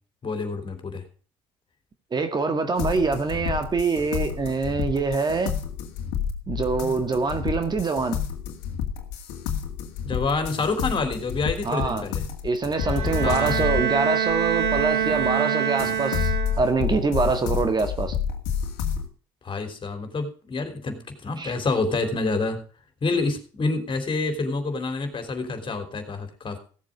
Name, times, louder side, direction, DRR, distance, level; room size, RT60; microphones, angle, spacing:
voice 1, 0.2-1.0 10.0-12.2 13.2-13.6 19.4-22.6 23.0-26.6, left 3 dB, 35° left, 7 dB, 3.5 m, -27 dB
voice 2, 2.1-5.5 6.5-8.2 11.6-12.0 12.4-16.3 16.6-18.2 21.4-21.5, right 4 dB, 30° right, 8 dB, 1.7 m, -25 dB
sound 1, 2.8-15.4 15.8-19.1, left 8 dB, 80° left, 2.0 m, -30 dB
Bowed string instrument, 12.8-16.9, right 8 dB, 90° right, 1.7 m, -25 dB
16.5 x 7.5 x 5.0 m, 0.41 s
hypercardioid pair, 75°, 14 cm